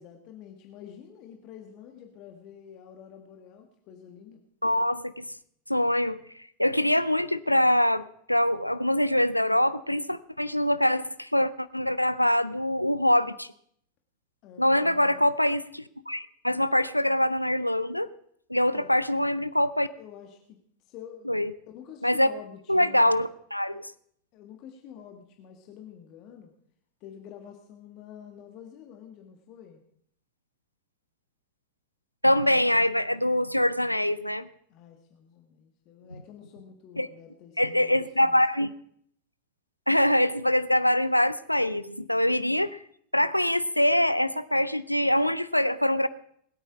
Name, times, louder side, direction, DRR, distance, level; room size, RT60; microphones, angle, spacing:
voice 1, 0.0-4.4 14.4-15.2 18.6-18.9 20.0-23.1 23.7-23.8 24.3-26.5 27.0-29.8 34.7-38.4, left 9 dB, 40° left, 4 dB, 1.5 m, -48 dB
voice 2, 4.6-5.2 5.7-6.2 6.6-13.5 14.6-18.1 18.5-19.9 21.3-21.5 22.0-22.3 22.7-23.9 32.2-34.5 37.0-37.1 37.6-38.7 39.9-42.8 43.1-46.1, left 1 dB, 90° left, 15 dB, 0.5 m, -24 dB
20.5 x 8.9 x 4.9 m, 0.66 s
figure-of-eight pair, 90°, 0 cm